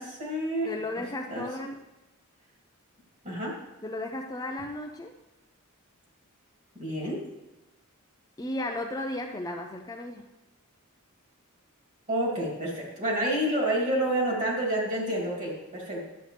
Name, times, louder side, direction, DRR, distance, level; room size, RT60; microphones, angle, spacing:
voice 1, 0.0-1.4 3.2-3.6 6.8-7.2 12.1-16.0, right 1 dB, 35° right, -3 dB, 2.7 m, -29 dB
voice 2, 0.6-1.8 3.8-5.1 8.4-10.3, left 1 dB, 15° left, 3 dB, 0.4 m, -34 dB
11.5 x 7.8 x 3.3 m, 1.0 s
head